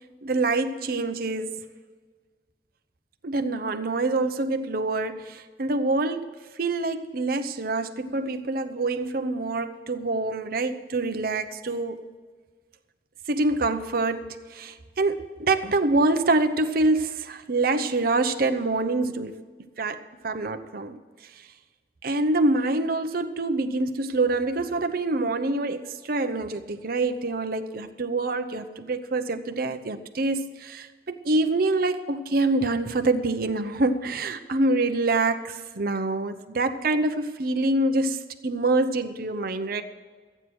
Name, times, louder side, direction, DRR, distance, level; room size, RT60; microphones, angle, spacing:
voice 1, 0.2-1.6 3.2-6.3 6.6-12.0 13.3-19.4 19.8-21.0 22.0-39.8, right 2 dB, 55° right, 7 dB, 0.8 m, -26 dB
14.0 x 8.9 x 6.2 m, 1.5 s
head